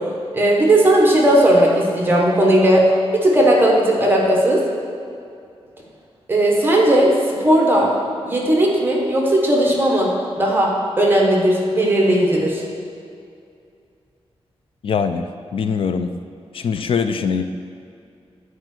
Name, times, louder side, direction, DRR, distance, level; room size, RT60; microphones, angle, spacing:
voice 1, 0.3-4.7 6.3-7.9 8.2-12.6, right 1 dB, 20° right, -2 dB, 1.2 m, -16 dB
voice 2, 14.8-15.2 15.5-16.1 16.5-17.4, left 6 dB, 60° left, 9 dB, 0.4 m, -21 dB
10.0 x 4.7 x 6.0 m, 2.5 s
wide cardioid pair, 180°, 10 cm